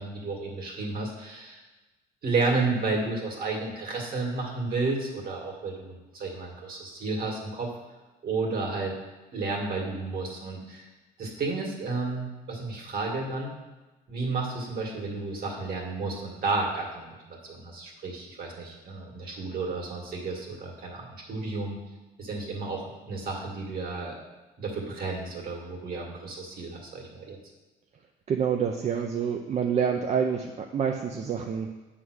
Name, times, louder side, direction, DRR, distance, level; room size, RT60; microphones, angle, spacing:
voice 1, 0.0-1.6 2.2-7.7 8.2-8.9 9.3-10.9 11.2-13.5 14.1-21.8 22.2-24.2 24.6-27.4, right 3 dB, 60° right, 0 dB, 2.2 m, -32 dB
voice 2, 28.3-31.7, right 7 dB, 40° right, 2 dB, 0.6 m, -27 dB
8.0 x 3.7 x 6.3 m, 1.2 s
cardioid pair, 110°, 17 cm